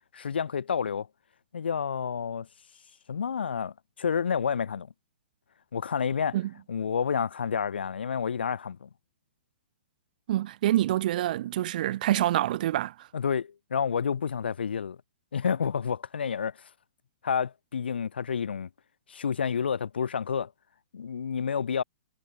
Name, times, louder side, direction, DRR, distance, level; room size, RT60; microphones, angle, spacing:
voice 1, 0.1-1.1 1.5-2.5 3.1-4.9 5.7-6.4 6.7-8.9 13.1-15.0 15.3-16.7 17.2-18.7 19.1-20.5 20.9-21.8, left 7 dB, 90° left, 1.3 m, -29 dB
voice 2, 10.3-12.9, right 13 dB, 55° right, 1.4 m, -26 dB
hypercardioid pair, 145°, 5 cm